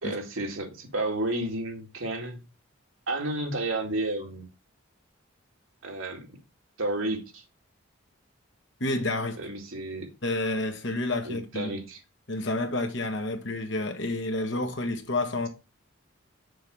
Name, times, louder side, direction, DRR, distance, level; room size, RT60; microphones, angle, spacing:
voice 1, 0.0-2.4 3.1-4.5 5.8-6.3 6.8-7.4 9.4-10.1 11.2-12.0, right 2 dB, 80° right, 2.2 m, -31 dB
voice 2, 8.8-9.4 10.2-11.7 12.3-15.5, left 2 dB, 60° left, 1.6 m, -29 dB
6.8 x 4.8 x 5.3 m
head